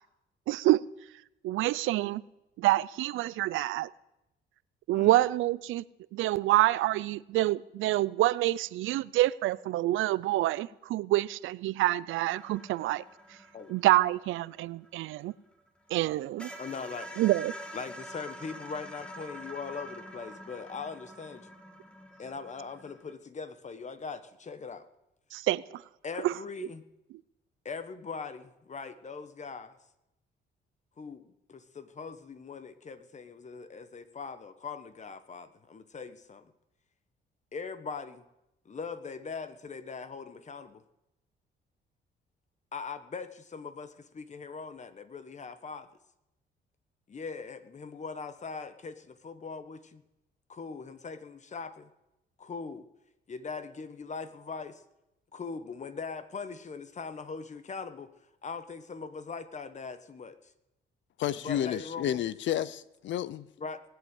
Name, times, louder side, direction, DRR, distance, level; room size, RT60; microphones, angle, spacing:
voice 1, 0.5-0.8 1.4-2.2 2.6-3.9 4.9-5.8 6.1-13.0 13.7-15.3 15.9-16.5 17.2-17.5 25.3-25.8 26.2-26.3, right 16 dB, 85° right, 0.5 m, -27 dB
sound 1, 12.3-15.7 16.0-16.1 16.4-23.1, equal, 5° left, 1.9 m, -46 dB
voice 2, 16.6-17.1 17.7-21.5 22.2-24.9 26.0-26.8 27.6-29.8 31.0-36.5 37.5-38.2 38.6-40.8 42.7-45.9 47.1-50.0 50.5-51.9 52.4-52.9 53.3-54.8 55.3-58.1 58.4-60.4 61.4-62.2 63.6-63.8, left 5 dB, 35° left, 1.2 m, -41 dB
voice 3, 61.2-63.5, left 11 dB, 70° left, 0.6 m, -31 dB
19.5 x 8.0 x 8.3 m
cardioid pair, 90°, 20 cm